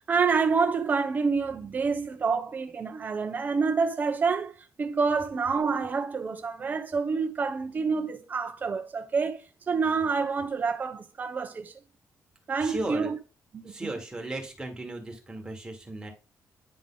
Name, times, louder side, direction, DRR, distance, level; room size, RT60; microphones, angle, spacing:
voice 1, 0.1-4.5 4.8-9.4 9.7-11.7 12.5-13.2 13.5-13.9, right 5 dB, 30° right, 0.7 m, -27 dB
voice 2, 12.6-13.1 13.6-16.1, right 2 dB, 15° right, 1.5 m, -36 dB
9.6 x 3.4 x 3.8 m
cardioid pair, 145°, 6 cm